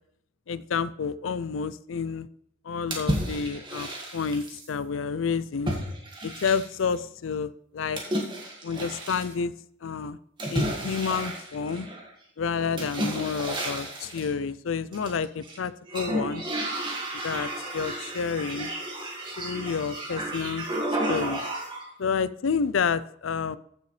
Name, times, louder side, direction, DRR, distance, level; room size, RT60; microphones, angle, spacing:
voice 1, 0.5-2.3 2.6-5.8 6.2-8.0 8.6-9.5 9.8-10.2 10.5-11.9 12.4-16.4 17.2-18.7 19.4-20.7 21.1-21.4 22.0-23.6, left 5 dB, 90° left, 16 dB, 0.5 m, -29 dB
sound 1, 2.9-4.7 5.7-6.9 8.0-9.3 10.4-12.1 12.8-14.3 14.9-15.6 15.9-21.9, right 1 dB, 25° right, 2.0 m, -32 dB
15.0 x 6.8 x 3.2 m, 0.70 s
head